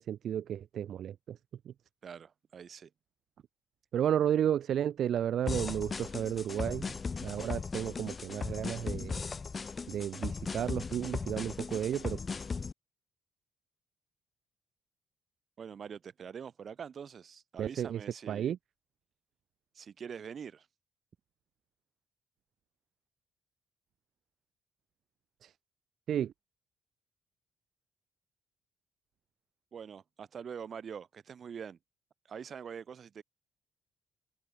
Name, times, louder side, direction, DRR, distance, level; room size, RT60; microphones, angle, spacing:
voice 1, 0.0-1.4 1.7-1.8 3.9-6.9 7.2-9.2 9.9-12.2 17.6-18.0 18.3-18.6 25.4-25.5 26.1-26.3, right 10 dB, 65° right, 0.5 m, -32 dB
voice 2, 2.0-2.9 15.6-18.5 19.7-20.7 29.7-31.8 32.3-33.2, right 7 dB, 50° right, 2.1 m, -44 dB
sound 1, 5.5-12.7, left 4 dB, 35° left, 0.5 m, -37 dB
open air
cardioid pair, 90°, 0 cm